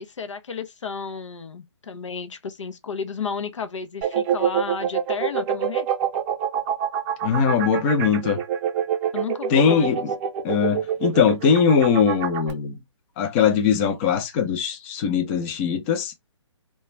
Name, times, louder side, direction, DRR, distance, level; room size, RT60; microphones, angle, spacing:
voice 1, 0.0-5.9 9.1-10.0, left 5 dB, 75° left, 0.6 m, -33 dB
sound 1, 4.0-12.5, right 8 dB, 30° right, 0.7 m, -26 dB
voice 2, 7.2-8.4 9.5-10.1 10.4-12.8 13.2-16.1, left 6 dB, 25° left, 0.5 m, -21 dB
2.3 x 2.2 x 3.1 m
figure-of-eight pair, 140°, 16 cm